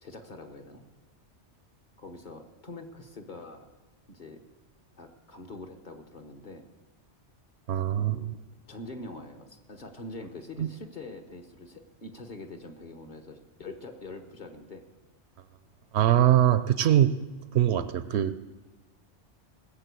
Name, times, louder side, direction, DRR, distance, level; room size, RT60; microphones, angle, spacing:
voice 1, 0.0-0.8 2.0-3.7 4.1-4.4 5.0-6.6 8.0-8.4 8.7-14.8, left 2 dB, 45° left, 4 dB, 1.3 m, -44 dB
voice 2, 7.7-8.3 10.6-10.7 15.9-17.1 17.5-18.5, right 11 dB, 70° right, 13 dB, 0.9 m, -23 dB
19.0 x 6.9 x 8.3 m, 1.2 s
omnidirectional pair, 1.2 m